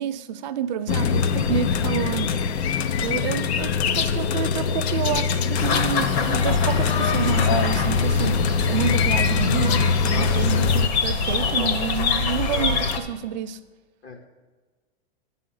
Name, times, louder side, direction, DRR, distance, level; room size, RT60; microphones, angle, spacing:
voice 1, 0.0-2.4 3.0-8.4 8.7-13.6, right 9 dB, 45° right, 0.6 m, -29 dB
sound 1, 0.9-10.9, left 6 dB, 90° left, 0.7 m, -23 dB
sound 2, 5.6-13.0, left 4 dB, 40° left, 0.9 m, -25 dB
voice 2, 10.1-10.7 14.0-14.3, left 3 dB, 20° left, 0.5 m, -36 dB
10.5 x 5.6 x 7.6 m
supercardioid pair, 160°, 32 cm